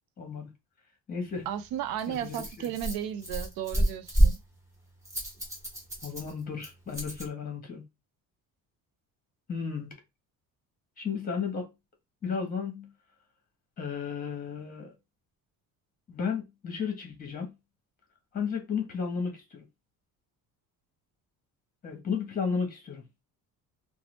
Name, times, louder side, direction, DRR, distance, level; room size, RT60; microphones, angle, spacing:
voice 1, 0.2-0.5 1.1-1.4 2.1-2.7 6.0-7.8 9.5-9.9 11.0-11.7 12.2-12.9 13.8-14.9 16.1-17.5 18.3-19.6 21.8-23.0, left 6 dB, 25° left, 0.9 m, -33 dB
Rattle, 1.3-7.3, right 1 dB, 10° right, 0.9 m, -30 dB
voice 2, 1.5-4.4, right 10 dB, 80° right, 0.6 m, -34 dB
3.1 x 2.0 x 3.0 m
cardioid pair, 175°, 35 cm